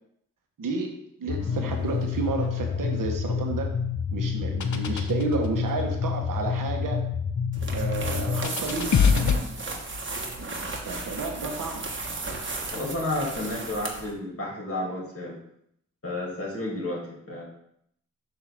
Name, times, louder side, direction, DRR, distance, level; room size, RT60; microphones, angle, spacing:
voice 1, 0.6-3.7 4.1-7.1 7.7-9.0 10.8-11.9, right 3 dB, 85° right, 2 dB, 1.3 m, -31 dB
sound 1, 1.3-9.4, left 6 dB, 60° left, 0.7 m, -27 dB
sound 2, 7.5-14.1, right 3 dB, 35° right, 1.2 m, -34 dB
voice 2, 12.7-15.4 16.0-17.4, left 1 dB, 45° left, -3 dB, 2.5 m, -31 dB
7.4 x 2.9 x 6.0 m, 0.73 s
cardioid pair, 60°, 32 cm